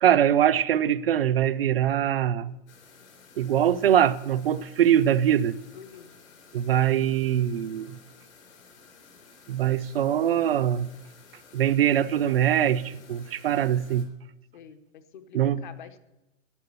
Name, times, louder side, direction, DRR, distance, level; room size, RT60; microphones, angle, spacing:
voice 1, 0.0-2.5 3.4-5.6 6.5-8.0 9.5-10.9 11.5-14.1 15.3-15.6, right 10 dB, 45° right, 0.5 m, -23 dB
sound 1, 2.7-14.1, left 5 dB, 55° left, 3.9 m, -53 dB
voice 2, 5.7-6.1 14.5-16.0, left 8 dB, 35° left, 0.9 m, -46 dB
11.5 x 9.8 x 6.8 m
hypercardioid pair, 175°, 40 cm